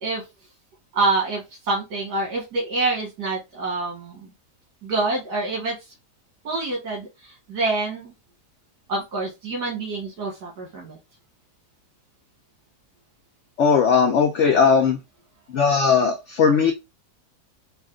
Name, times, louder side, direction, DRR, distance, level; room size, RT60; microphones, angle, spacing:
voice 1, 0.9-4.2 4.8-5.8 6.4-8.1 8.9-11.0, right 3 dB, 75° right, -3 dB, 2.0 m, -26 dB
voice 2, 13.6-15.0 15.5-16.7, left 5 dB, 60° left, 4 dB, 0.8 m, -18 dB
4.5 x 2.5 x 3.6 m, 0.23 s
omnidirectional pair, 1.7 m